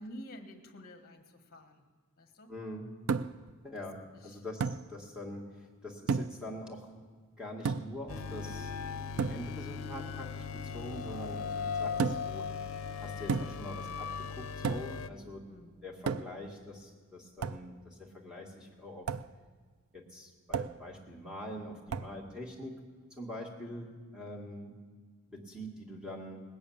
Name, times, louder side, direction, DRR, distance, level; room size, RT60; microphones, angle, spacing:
voice 1, 0.0-1.9 2.2-2.5 4.1-4.4 15.5-15.8, equal, 45° left, 6 dB, 1.4 m, -50 dB
voice 2, 2.5-2.9 3.6-6.9 7.4-8.7 9.3-12.5 13.0-15.5 15.8-19.1 19.9-22.8 23.2-24.7 25.3-26.4, left 1 dB, 5° right, -1 dB, 2.0 m, -44 dB
sound 1, 3.1-3.5 4.6-4.9 6.1-6.5 7.7-8.0 9.2-9.5 12.0-12.4 13.3-13.7 14.6-15.0 16.1-16.5 17.4-17.7 19.1-19.3 20.5-20.9 21.9-22.2, right 5 dB, 80° right, 0.4 m, -33 dB
sound 2, 8.1-15.1, left 6 dB, 70° left, 0.6 m, -39 dB
sound 3, 8.1-16.8, left 2 dB, 20° right, 0.6 m, -51 dB
19.5 x 7.1 x 8.7 m, 1.5 s
head